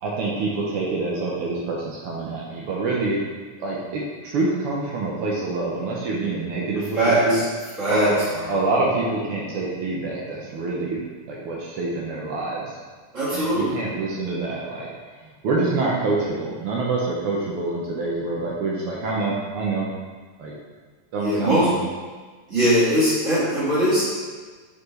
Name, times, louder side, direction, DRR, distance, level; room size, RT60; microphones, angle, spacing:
voice 1, 0.0-3.2 3.6-7.0 7.2-7.4 7.9-8.1 8.5-11.0 11.3-12.8 13.3-14.9 15.2-19.9 20.4-20.5 21.1-21.7, right 3 dB, 85° right, -4 dB, 1.2 m, -26 dB
voice 2, 6.9-7.4 7.8-8.1 13.1-13.8 21.2-21.7 22.5-24.1, right 1 dB, 30° right, -10 dB, 1.6 m, -20 dB
6.9 x 4.5 x 3.2 m, 1.4 s
omnidirectional pair, 3.6 m